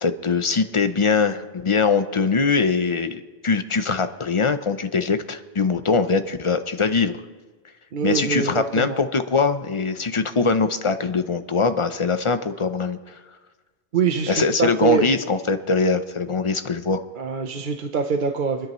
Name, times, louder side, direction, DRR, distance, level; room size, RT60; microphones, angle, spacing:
voice 1, 0.0-7.2 8.0-13.0 14.3-17.0, left 4 dB, 35° left, 9 dB, 0.6 m, -22 dB
voice 2, 7.9-9.0 13.9-15.1 17.2-18.7, right 6 dB, 55° right, 5 dB, 0.9 m, -24 dB
27.5 x 10.5 x 3.1 m, 1.3 s
omnidirectional pair, 1.1 m